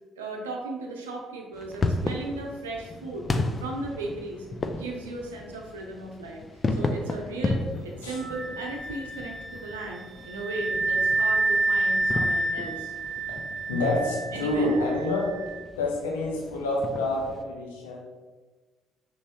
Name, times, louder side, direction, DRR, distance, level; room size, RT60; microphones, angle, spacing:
voice 1, 0.2-3.3 3.6-4.5 4.8-6.4 6.7-12.9 14.3-14.8, right 2 dB, 85° right, 0 dB, 0.6 m, -36 dB
sound 1, 1.5-17.4, left 2 dB, 35° left, 0.4 m, -34 dB
Wind instrument woodwind instrument, 8.1-15.6, right 2 dB, 45° right, 1.1 m, -29 dB
voice 2, 13.7-15.3 15.8-18.0, left 2 dB, 80° left, -1 dB, 0.8 m, -27 dB
5.3 x 3.2 x 2.9 m, 1.3 s
figure-of-eight pair, 45°, 0 cm